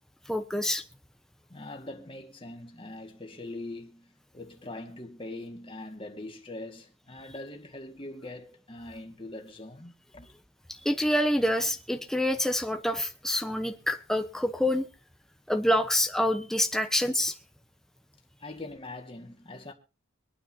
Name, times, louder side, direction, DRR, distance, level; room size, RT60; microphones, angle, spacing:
voice 1, 0.3-0.8 10.7-14.9 15.5-17.4, left 1 dB, ahead, 0.9 m, -27 dB
voice 2, 1.5-10.3 18.4-19.7, left 2 dB, 25° left, 2.0 m, -42 dB
24.0 x 9.3 x 2.8 m
head